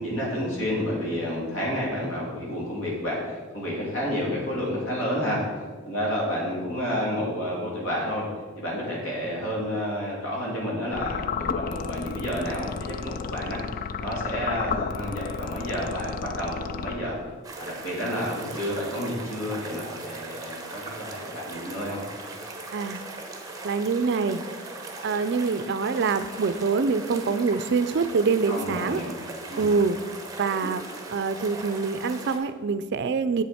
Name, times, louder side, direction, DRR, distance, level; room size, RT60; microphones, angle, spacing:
voice 1, 0.0-5.4 5.8-8.3 8.5-13.6 14.0-17.1 17.6-22.0 28.5-29.1 29.5-29.7, equal, 70° left, -4 dB, 2.8 m, -30 dB
sound 1, 10.9-17.4, left 6 dB, 45° left, 0.3 m, -33 dB
sound 2, 17.4-32.4, right 2 dB, 15° right, 1.0 m, -39 dB
voice 2, 23.6-24.4 25.0-29.0 29.6-30.0 30.4-30.8 31.1-33.4, right 4 dB, 55° right, 12 dB, 0.4 m, -25 dB
7.7 x 7.5 x 4.2 m, 1.5 s
head